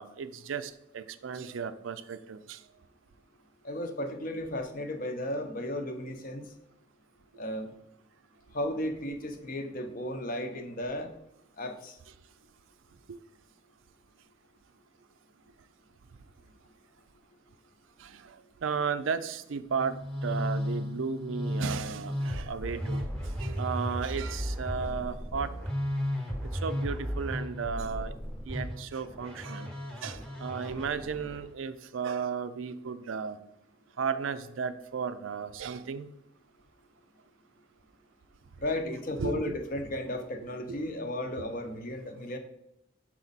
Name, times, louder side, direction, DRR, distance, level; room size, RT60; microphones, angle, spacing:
voice 1, 0.0-2.6 18.0-18.4 18.6-25.5 26.6-28.1 28.5-29.7 30.0-33.4 34.0-36.1 39.2-39.4 40.7-40.8, right 6 dB, 85° right, 11 dB, 0.4 m, -34 dB
voice 2, 3.6-6.4 7.4-7.7 8.5-11.1 11.6-12.0 38.6-42.4, left 1 dB, 45° left, 6 dB, 0.7 m, -34 dB
Musical instrument, 19.7-31.5, equal, 5° left, 0.9 m, -35 dB
6.2 x 4.5 x 4.0 m, 0.80 s
head